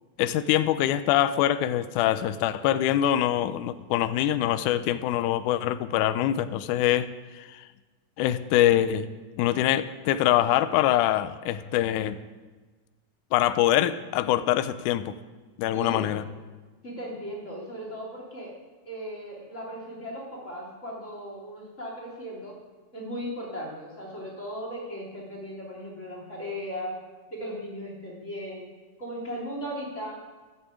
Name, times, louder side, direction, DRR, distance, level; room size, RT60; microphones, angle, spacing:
voice 1, 0.2-7.1 7.4-7.6 8.2-9.1 9.4-12.2 13.3-15.1 15.6-16.2, left 12 dB, 80° left, 12 dB, 2.0 m, -24 dB
voice 2, 15.7-16.1 16.8-18.5 18.8-22.5 22.9-26.9 27.3-28.7 29.0-30.1, equal, 20° left, -3 dB, 3.4 m, -37 dB
12.5 x 9.3 x 8.4 m, 1.3 s
omnidirectional pair, 3.8 m